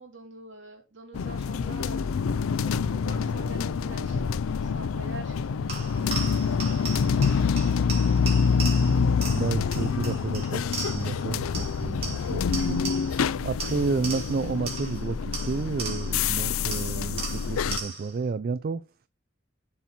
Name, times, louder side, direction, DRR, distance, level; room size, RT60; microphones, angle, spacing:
voice 1, 0.0-2.1 2.6-8.5, right 2 dB, 60° right, 3.3 m, -46 dB
sound 1, 1.1-17.8, left 6 dB, 90° left, 0.4 m, -26 dB
sound 2, 5.7-11.2 11.5-13.3 13.6-16.3 16.7-18.2, right 4 dB, 30° right, 2.9 m, -37 dB
voice 2, 9.3-12.8 13.4-18.8, right 4 dB, 45° right, 0.3 m, -31 dB
7.3 x 4.3 x 5.7 m
head